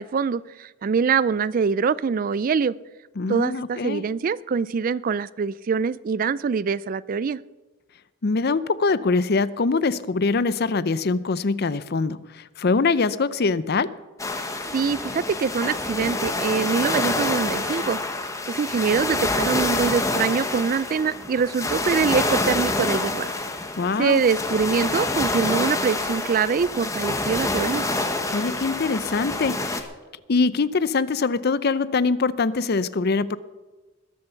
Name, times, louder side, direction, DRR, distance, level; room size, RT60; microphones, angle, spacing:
voice 1, 0.0-2.7 3.3-7.4 14.4-14.5 14.7-18.0 18.5-23.3 24.0-27.8, right 5 dB, 40° right, 19 dB, 0.3 m, -24 dB
voice 2, 3.2-4.0 8.2-13.9 23.8-24.2 28.3-29.8 30.3-33.4, left 4 dB, 50° left, 17 dB, 0.5 m, -23 dB
sound 1, 14.2-29.8, left 2 dB, 15° left, 1.1 m, -27 dB
21.0 x 7.1 x 6.9 m, 1.2 s
head